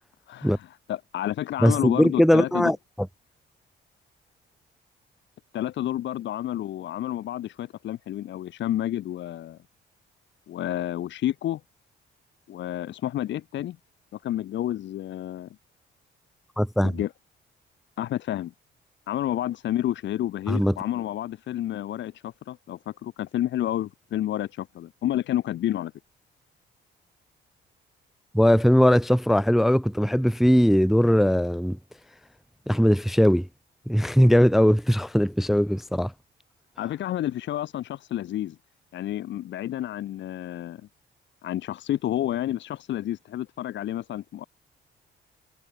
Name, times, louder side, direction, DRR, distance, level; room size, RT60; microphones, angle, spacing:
voice 1, 0.3-2.7 5.5-9.6 10.5-11.6 12.5-13.8 14.1-15.5 16.8-17.1 18.0-18.5 19.1-25.9 36.8-38.6 38.9-40.8 41.4-44.4, left 12 dB, 65° left, 0.8 m, -30 dB
voice 2, 1.6-2.8 16.6-16.9 20.5-20.7 28.3-31.8 32.7-33.5 33.9-36.1, equal, ahead, 0.3 m, -20 dB
cardioid pair, 90°, 20 cm